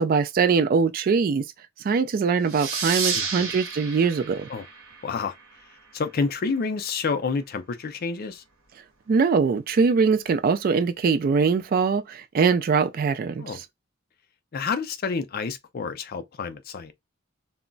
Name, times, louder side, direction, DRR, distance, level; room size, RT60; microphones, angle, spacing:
voice 1, 0.0-1.5 1.8-4.5 9.1-13.6, right 5 dB, 45° right, 0.3 m, -22 dB
sound 1, 2.5-5.7, right 5 dB, 75° right, 0.8 m, -31 dB
voice 2, 3.1-3.5 4.5-4.7 5.0-5.3 5.9-8.4 13.4-13.6 14.5-16.9, left 4 dB, 45° left, 0.4 m, -29 dB
2.2 x 2.0 x 3.7 m
head